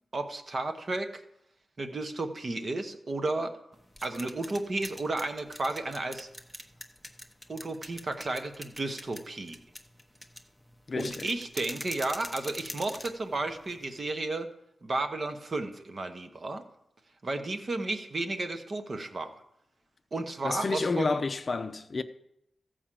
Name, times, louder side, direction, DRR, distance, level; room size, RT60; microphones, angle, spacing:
voice 1, 0.1-1.2 1.8-3.6 4.0-6.3 7.5-9.6 11.0-14.5 14.8-16.6 17.2-19.4 20.1-21.2, right 2 dB, 40° right, 1.0 m, -33 dB
sound 1, 3.7-14.1, equal, ahead, 0.8 m, -45 dB
voice 2, 10.9-11.3 20.4-22.0, left 3 dB, 35° left, 0.5 m, -30 dB
14.5 x 4.9 x 7.5 m
wide cardioid pair, 125°, 0 cm